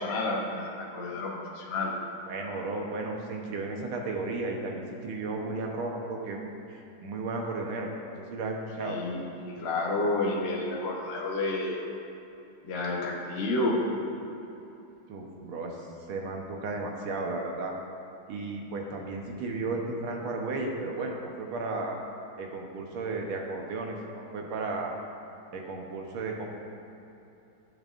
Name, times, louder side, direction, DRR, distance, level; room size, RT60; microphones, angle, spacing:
voice 1, 0.0-1.9 8.8-11.8 12.6-13.8, left 2 dB, 55° left, -3 dB, 0.7 m, -30 dB
voice 2, 2.3-9.0 15.1-15.8 16.1-17.7 18.3-22.0 22.4-24.9 25.5-26.5, right 3 dB, 80° right, 1 dB, 1.8 m, -34 dB
11.5 x 7.3 x 2.5 m, 2.9 s
omnidirectional pair, 2.3 m